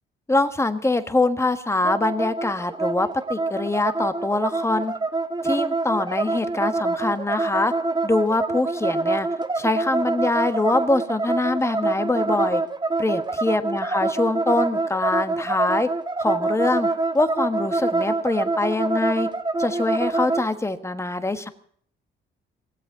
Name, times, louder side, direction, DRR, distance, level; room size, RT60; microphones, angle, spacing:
voice 1, 0.3-4.9 5.4-7.7 8.0-9.3 9.5-12.6 13.0-15.9 16.2-16.9 17.1-19.3 19.6-21.5, left 2 dB, 15° left, 10 dB, 1.3 m, -24 dB
sound 1, 1.8-20.5, right 3 dB, 20° right, 1.2 m, -25 dB
18.0 x 8.1 x 9.5 m, 0.62 s
cardioid pair, 90°, 20 cm